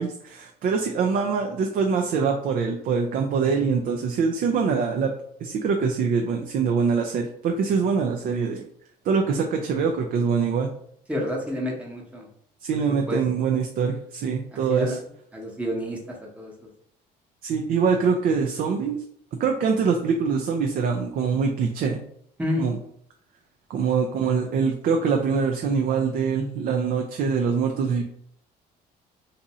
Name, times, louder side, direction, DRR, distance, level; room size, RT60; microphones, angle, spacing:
voice 1, 0.0-5.1 5.4-8.6 9.0-10.7 12.6-15.0 17.4-19.0 19.4-22.0 22.6-22.8 23.7-28.0, right 5 dB, 55° right, 3 dB, 0.4 m, -24 dB
voice 2, 11.1-12.3 13.1-13.2 14.5-15.0 15.3-16.5 22.4-22.7, left 1 dB, 5° right, -1 dB, 0.9 m, -29 dB
2.6 x 2.5 x 4.1 m, 0.68 s
cardioid pair, 110°, 17 cm